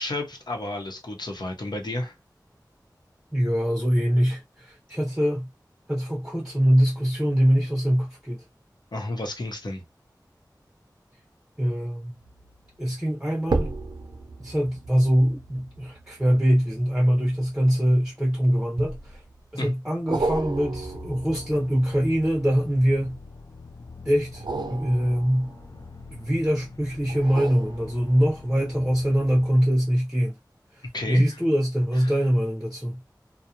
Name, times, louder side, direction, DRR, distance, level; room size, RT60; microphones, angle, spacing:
voice 1, 0.0-2.1 8.9-9.8 19.6-19.7 30.9-31.2 32.0-32.2, left 2 dB, 75° left, 0.8 m, -31 dB
voice 2, 3.3-5.5 5.9-8.4 11.6-12.2 12.8-13.7 14.4-19.2 19.5-23.2 24.0-24.4 24.7-25.5 26.1-30.4 30.8-33.0, equal, 10° right, 0.7 m, -23 dB
sound 1, 12.2-12.6 13.4-18.1 18.8-19.4 20.1-23.1 24.3-26.4 27.1-28.5 29.0-29.1, right 3 dB, 75° right, 0.4 m, -34 dB
sound 2, 20.4-29.6, left 4 dB, 55° left, 0.4 m, -45 dB
2.4 x 2.1 x 2.8 m
wide cardioid pair, 50°, 7 cm